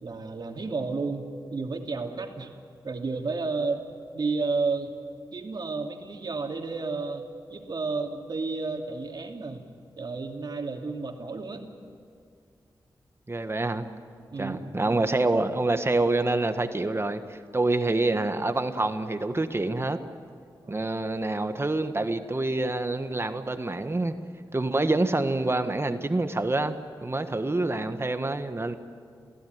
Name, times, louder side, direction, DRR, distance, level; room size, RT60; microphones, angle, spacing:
voice 1, 0.0-2.5 2.8-3.8 4.1-4.9 5.3-9.6 10.0-11.6 14.3-15.0 20.6-20.9, right 4 dB, 60° right, 3 dB, 2.7 m, -32 dB
voice 2, 13.3-13.8 14.4-20.0 20.7-24.1 24.5-26.8 27.0-28.8, right 2 dB, 30° right, 8 dB, 1.5 m, -26 dB
29.0 x 16.0 x 9.5 m, 2.2 s
cardioid pair, 55°, 8 cm